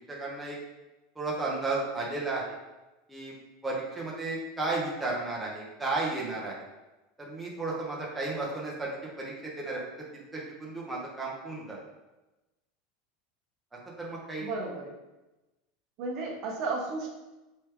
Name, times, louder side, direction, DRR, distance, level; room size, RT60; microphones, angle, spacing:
voice 1, 0.1-0.6 1.2-2.6 3.1-3.3 3.6-6.7 7.2-8.9 9.2-9.8 10.3-11.8 14.0-14.5, right 2 dB, 5° right, -5 dB, 0.7 m, -33 dB
voice 2, 14.4-14.8 16.0-17.1, right 3 dB, 40° right, 0 dB, 0.7 m, -33 dB
3.2 x 3.2 x 4.5 m, 1.1 s
supercardioid pair, 160°, 0 cm